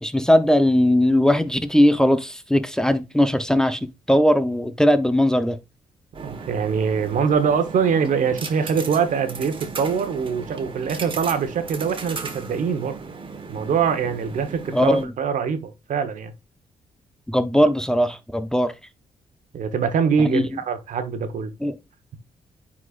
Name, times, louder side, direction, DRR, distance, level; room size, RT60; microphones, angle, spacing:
voice 1, 0.0-3.8 4.1-5.6 14.7-15.1 17.3-18.7 20.2-20.4 21.6-21.7, equal, 5° left, 0.7 m, -19 dB
sound 1, 6.1-15.0, right 4 dB, 40° right, 1.3 m, -36 dB
voice 2, 6.2-13.0 13.5-16.3 19.5-21.5, right 6 dB, 70° right, 1.1 m, -23 dB
9.4 x 4.3 x 2.5 m
cardioid pair, 75°, 14 cm